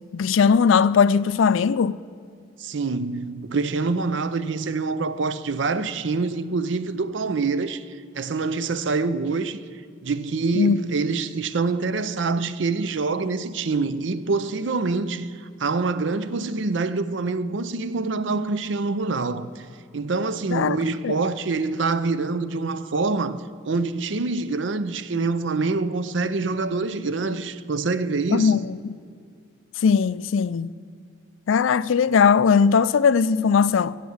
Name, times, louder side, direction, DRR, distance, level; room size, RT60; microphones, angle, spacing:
voice 1, 0.1-2.0 10.5-10.8 20.5-20.8 21.0-21.2 28.3-28.9 29.8-30.7 31.5-34.0, left 6 dB, 90° left, 0.4 m, -19 dB
voice 2, 2.6-7.8 8.1-9.6 10.0-15.3 15.6-19.7 19.9-28.6, right 3 dB, 70° right, 0.6 m, -25 dB
16.0 x 7.5 x 7.2 m
head